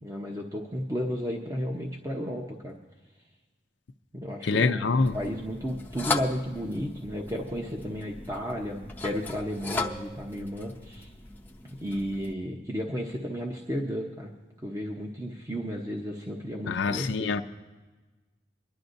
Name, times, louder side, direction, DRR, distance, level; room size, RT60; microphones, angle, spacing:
voice 1, 0.0-2.7 4.1-11.1 11.7-14.3 14.6-17.3, equal, 20° right, 0.9 m, -33 dB
voice 2, 4.4-5.2 16.7-17.4, left 4 dB, 85° left, 0.5 m, -25 dB
sound 1, 5.0-12.3, left 3 dB, 10° left, 0.6 m, -37 dB
24.5 x 11.5 x 2.6 m
head